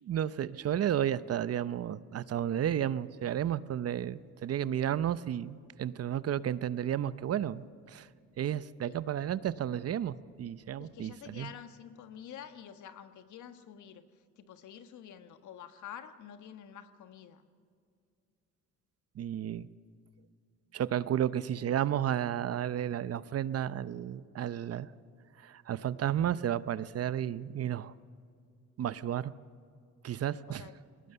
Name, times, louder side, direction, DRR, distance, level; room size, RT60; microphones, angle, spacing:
voice 1, 0.0-8.1 8.4-11.5 19.2-19.7 20.7-24.9 25.4-27.9 28.8-29.3 30.0-30.6, right 10 dB, 55° right, 16 dB, 0.7 m, -32 dB
voice 2, 10.8-17.4 30.5-30.8, left 9 dB, 75° left, 9 dB, 1.4 m, -48 dB
21.0 x 19.0 x 6.9 m, 2.3 s
cardioid pair, 90°, 30 cm